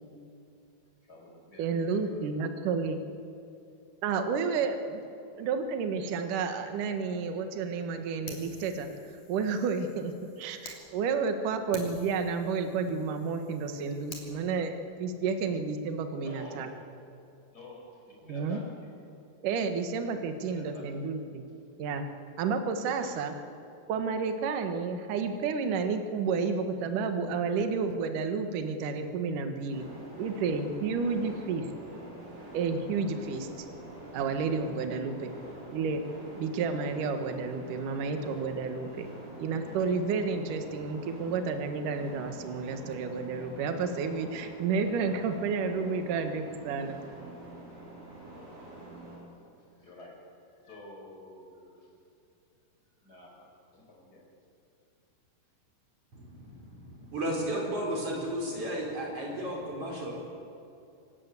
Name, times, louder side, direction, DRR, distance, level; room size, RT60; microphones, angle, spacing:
voice 1, 1.0-2.4 16.2-16.9 17.5-19.0 20.4-21.0 23.0-23.3 49.8-50.3 50.6-51.9 53.0-54.3 56.4-56.5, left 1 dB, 25° left, -1 dB, 5.9 m, -50 dB
voice 2, 1.6-3.0 4.0-5.0 5.4-8.9 9.3-16.7 18.3-18.6 19.4-21.4 21.8-22.0 22.4-23.3 23.9-29.9 30.2-31.7 32.5-33.7 34.1-35.3 35.7-36.0 36.4-39.1 39.4-47.0, right 5 dB, 60° right, 6 dB, 2.7 m, -31 dB
Fire, 8.3-10.8 11.2-11.3 11.7-14.3, left 4 dB, 50° left, 4.5 m, -49 dB
sound 1, 29.7-49.2, right 1 dB, 90° right, 8.1 m, -46 dB
voice 3, 56.1-60.1, right 1 dB, 35° right, -1 dB, 5.9 m, -34 dB
27.0 x 17.5 x 8.2 m, 2.6 s
omnidirectional pair, 4.5 m